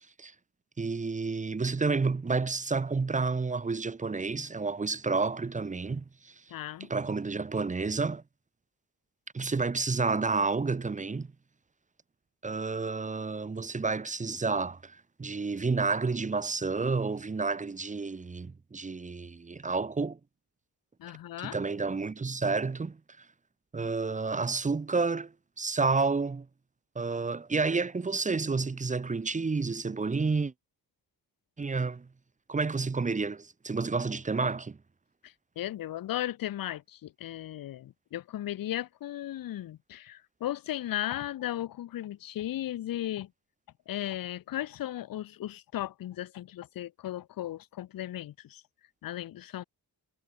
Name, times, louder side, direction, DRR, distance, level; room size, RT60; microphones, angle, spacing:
voice 1, 0.8-6.3 6.9-8.2 9.3-11.3 12.4-20.2 21.4-23.2 23.7-26.5 27.0-30.5 31.6-32.1 32.5-34.8, right 4 dB, 20° right, 0.5 m, -30 dB
voice 2, 6.5-6.9 21.0-21.6 35.2-43.3 43.9-48.6 49.0-49.6, left 13 dB, 60° left, 0.5 m, -36 dB
wide cardioid pair, 130°, 40 cm